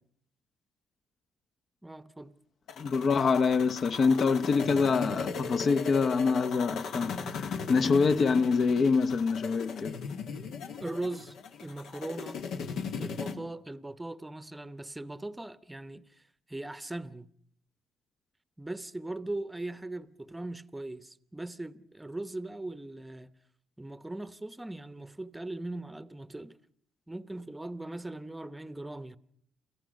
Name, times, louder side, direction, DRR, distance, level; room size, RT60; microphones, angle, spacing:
voice 1, 1.8-2.3 10.8-11.4 11.6-12.4 13.0-16.0 16.5-17.3 18.6-23.3 23.8-26.6 27.1-29.2, right 2 dB, 10° right, 0.9 m, -39 dB
sound 1, 2.7-13.3, left 5 dB, 75° left, 1.6 m, -38 dB
voice 2, 2.8-10.0, left 5 dB, 50° left, 1.0 m, -25 dB
28.0 x 14.5 x 6.4 m
cardioid pair, 90°, 0 cm